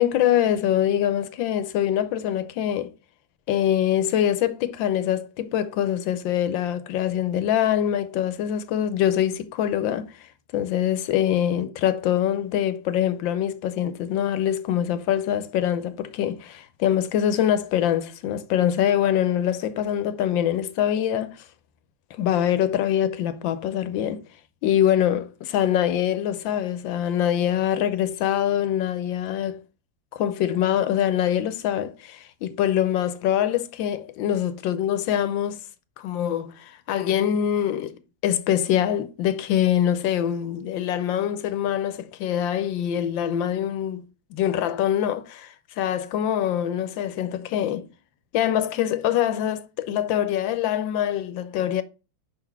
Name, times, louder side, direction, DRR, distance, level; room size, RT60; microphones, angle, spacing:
voice 1, 0.0-2.9 3.5-21.5 22.2-24.2 24.6-29.6 30.1-35.6 36.0-47.9 48.3-51.8, left 10 dB, 80° left, 1.4 m, -24 dB
5.9 x 3.9 x 4.5 m
omnidirectional pair, 2.1 m